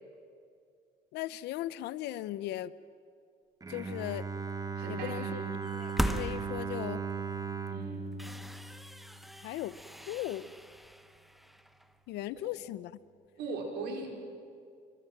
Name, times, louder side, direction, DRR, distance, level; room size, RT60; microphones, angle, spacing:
voice 1, 1.1-2.7 3.7-4.3 4.9-5.4 5.7-7.0 9.4-9.8 10.1-10.5 12.1-12.9, left 15 dB, 85° left, 17 dB, 0.7 m, -37 dB
Bowed string instrument, 3.6-9.6, right 5 dB, 20° right, 1.3 m, -38 dB
voice 2, 4.8-5.4 7.7-8.2 12.4-12.5 13.4-14.1, right 4 dB, 80° right, 1 dB, 4.8 m, -39 dB
sound 1, 5.6-7.0 7.6-7.7 8.1-12.0, equal, ahead, 0.9 m, -38 dB
26.5 x 24.0 x 6.1 m, 2.3 s
cardioid pair, 110°, 17 cm